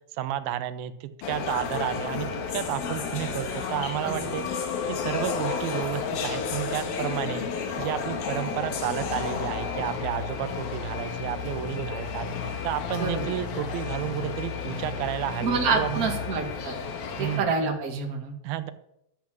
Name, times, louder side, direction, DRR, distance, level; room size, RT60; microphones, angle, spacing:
voice 1, 0.1-4.5 4.9-7.5 7.8-16.1 17.2-17.5 18.4-18.7, right 12 dB, 90° right, 11 dB, 2.6 m, -31 dB
sound 1, 1.2-17.4, left 5 dB, 85° left, 3.2 m, -32 dB
sound 2, 9.0-16.5, left 7 dB, 45° left, 2.7 m, -37 dB
voice 2, 13.0-13.4 15.4-16.8 17.2-18.3, right 4 dB, 30° right, 1 dB, 1.8 m, -27 dB
12.0 x 7.6 x 7.4 m, 0.80 s
omnidirectional pair, 4.2 m